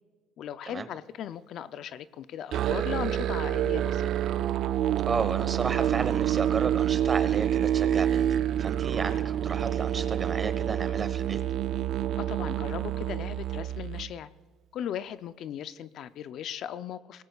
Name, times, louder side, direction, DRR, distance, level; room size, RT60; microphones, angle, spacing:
voice 1, 0.4-4.1 12.2-14.3 14.7-17.2, left 10 dB, 60° left, 13 dB, 0.5 m, -37 dB
Musical instrument, 2.5-14.1, right 11 dB, 60° right, 0.4 m, -27 dB
voice 2, 5.1-11.4, right 5 dB, 30° right, 11 dB, 1.2 m, -33 dB
24.0 x 18.5 x 2.4 m, 1.5 s
cardioid pair, 105°, 0 cm